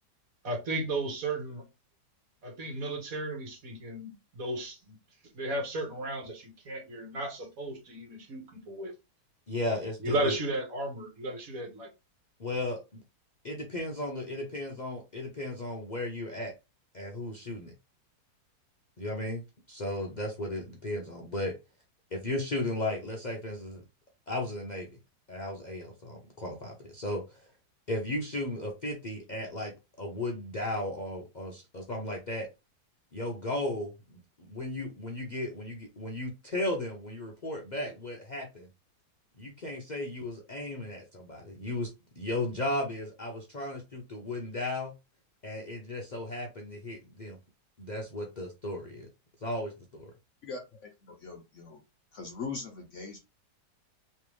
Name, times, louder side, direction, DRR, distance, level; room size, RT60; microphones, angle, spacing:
voice 1, 0.4-1.6 2.4-5.0 5.3-8.9 10.0-11.9, right 1 dB, 55° right, 1.6 m, -34 dB
voice 2, 9.5-10.3 12.4-13.0 13.4-16.5 16.9-17.7 19.0-21.6 22.1-23.8 24.3-24.9 25.3-27.5 27.9-32.5 33.1-38.7 39.4-44.9 45.4-47.4 47.8-49.1 49.4-50.1, left 1 dB, 80° left, 0.4 m, -35 dB
voice 3, 50.4-51.8 52.1-53.2, left 4 dB, 60° left, 0.8 m, -41 dB
3.3 x 3.2 x 3.1 m
omnidirectional pair, 1.9 m